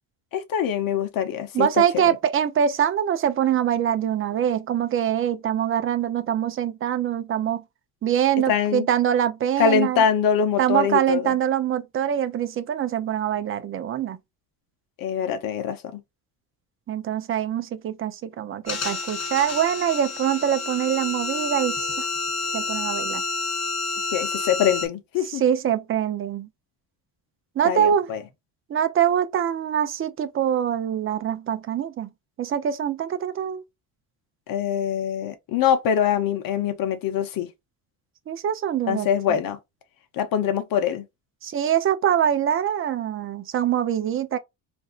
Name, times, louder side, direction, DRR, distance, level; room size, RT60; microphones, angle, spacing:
voice 1, 0.3-1.7 1.9-2.2 8.5-8.9 9.6-11.3 15.0-16.0 24.1-25.4 27.6-28.2 34.5-37.5 38.9-39.6 40.1-41.0, left 8 dB, 60° left, 0.9 m, -24 dB
voice 2, 1.5-7.6 8.0-10.0 10.6-14.2 16.9-22.1 22.5-23.2 25.3-26.5 27.6-28.1 28.7-32.1 32.4-33.6 38.3-39.4 41.4-44.4, right 9 dB, 35° right, 0.5 m, -24 dB
sound 1, 18.7-24.9, left 3 dB, 40° left, 1.2 m, -29 dB
4.2 x 2.6 x 2.4 m
cardioid pair, 140°, 39 cm